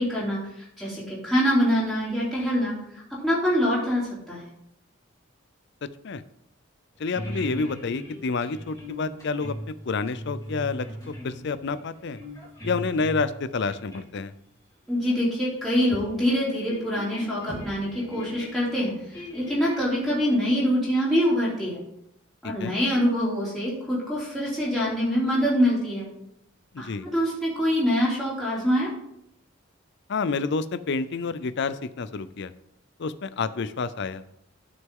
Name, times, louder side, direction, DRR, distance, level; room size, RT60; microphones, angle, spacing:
voice 1, 0.0-2.7 3.2-4.5 14.9-21.8 22.4-26.1 26.8-28.9, equal, ahead, -8 dB, 3.1 m, -25 dB
sound 1, 6.9-13.4 13.6-14.1 15.1-15.2 15.5-15.6 15.9-16.1 16.5-20.3, equal, 15° left, 2.6 m, -39 dB
voice 2, 7.0-12.2 12.6-14.3 22.4-22.7 26.7-27.1 30.1-32.5 33.0-34.2, left 4 dB, 60° left, 14 dB, 0.5 m, -29 dB
12.0 x 6.1 x 3.7 m, 0.77 s
head